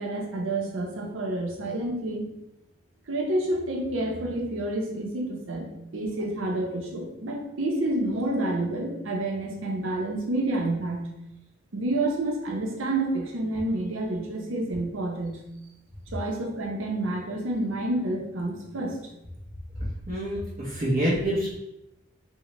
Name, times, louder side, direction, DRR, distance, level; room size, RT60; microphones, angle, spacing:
voice 1, 0.0-2.3 3.1-11.1 11.7-15.4 16.1-19.0, right 1 dB, 90° right, 0 dB, 0.7 m, -29 dB
voice 2, 19.8-21.6, right 1 dB, 40° right, -10 dB, 0.8 m, -27 dB
3.7 x 2.1 x 2.9 m, 0.87 s
head